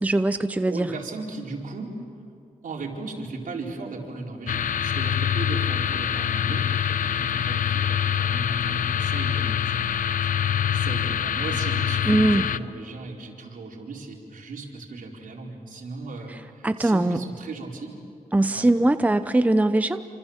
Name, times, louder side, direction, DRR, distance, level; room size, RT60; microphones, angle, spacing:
voice 1, 0.0-0.9 12.1-12.5 16.3-16.4 16.6-17.2 18.3-20.0, right 2 dB, 10° right, 10 dB, 0.7 m, -21 dB
voice 2, 0.7-1.9 2.6-18.0 18.5-18.7, right 3 dB, 75° right, -1 dB, 4.6 m, -37 dB
sound 1, 4.5-12.6, left 9 dB, 70° left, 0.7 m, -25 dB
29.0 x 26.5 x 7.3 m, 2.4 s
wide cardioid pair, 100°, 14 cm